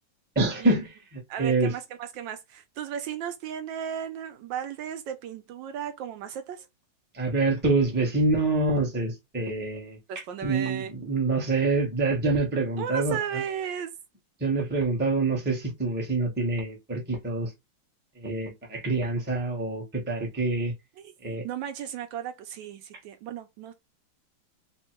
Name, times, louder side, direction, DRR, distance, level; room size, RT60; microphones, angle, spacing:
voice 1, 0.4-1.7 7.2-10.0 10.4-13.2 14.4-17.5 18.2-20.7 21.2-21.4, right 3 dB, 10° right, 0.6 m, -26 dB
voice 2, 1.3-6.7 10.1-10.9 12.8-13.9 21.0-21.1 21.4-23.7, right 9 dB, 75° right, 1.2 m, -35 dB
3.4 x 2.2 x 4.3 m
omnidirectional pair, 2.2 m